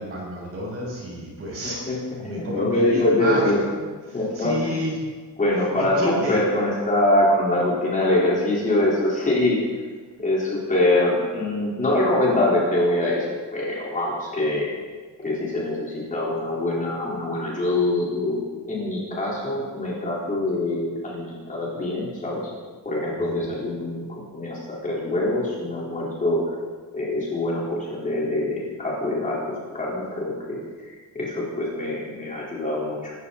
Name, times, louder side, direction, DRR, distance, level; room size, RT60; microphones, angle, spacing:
voice 1, 0.0-3.5 4.1-5.0 5.7-6.4 23.3-23.4, right 1 dB, 40° right, -3 dB, 7.0 m, -30 dB
voice 2, 1.9-3.6 4.1-4.8 5.4-9.6 10.2-14.7 15.2-22.5 22.8-26.5 26.9-33.1, left 1 dB, 25° left, -6 dB, 4.3 m, -24 dB
25.0 x 13.5 x 4.2 m, 1.5 s
cardioid pair, 180°, 34 cm